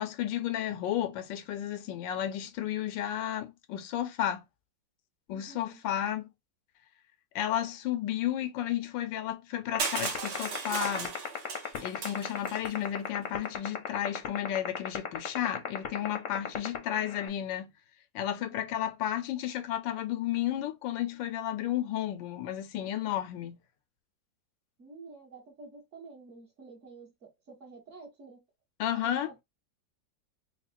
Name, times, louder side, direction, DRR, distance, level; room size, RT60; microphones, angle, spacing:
voice 1, 0.0-4.4 5.3-6.3 7.3-11.2 11.8-17.7 18.1-23.6 28.8-29.3, left 11 dB, 80° left, 1.3 m, -32 dB
voice 2, 5.3-5.8 16.9-17.1 18.4-18.7 24.8-28.4 28.9-29.3, right 3 dB, 40° right, 1.6 m, -50 dB
sound 1, 9.8-17.3, left 10 dB, 55° left, 1.0 m, -32 dB
Crushing, 9.8-12.7, right 5 dB, 65° right, 1.5 m, -36 dB
4.7 x 2.3 x 2.4 m
omnidirectional pair, 2.0 m